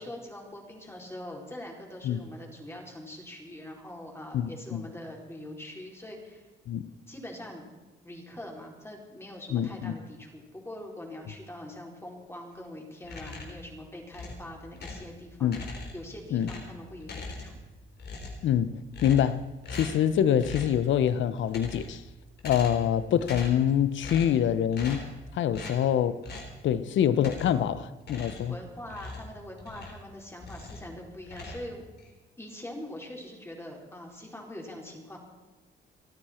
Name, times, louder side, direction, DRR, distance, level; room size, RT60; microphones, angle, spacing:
voice 1, 0.0-6.5 7.1-7.6 8.0-15.5 15.9-17.5 25.6-25.8 26.7-26.9 28.5-31.8 32.4-35.2, left 1 dB, 10° left, 0 dB, 4.4 m, -43 dB
voice 2, 4.3-4.8 6.7-6.9 9.5-9.9 15.4-15.6 16.3-16.5 18.4-19.4 19.7-22.0 22.4-25.0 25.3-26.1 26.6-28.5, left 9 dB, 70° left, 15 dB, 0.9 m, -25 dB
sound 1, 13.0-13.7 14.1-15.1 15.5-16.1 16.4-17.7 18.0-18.5 18.9-19.4 19.6-20.1 20.4-20.8 21.4-22.0 22.4-22.9 23.2-23.7 24.0-24.4 24.7-25.2 25.5-25.8 26.2-26.6 27.2-27.7 28.0-30.1 30.4-30.9 31.2-32.1, left 3 dB, 55° left, 3.8 m, -41 dB
29.0 x 9.7 x 4.5 m, 1.2 s
cardioid pair, 90°, 20 cm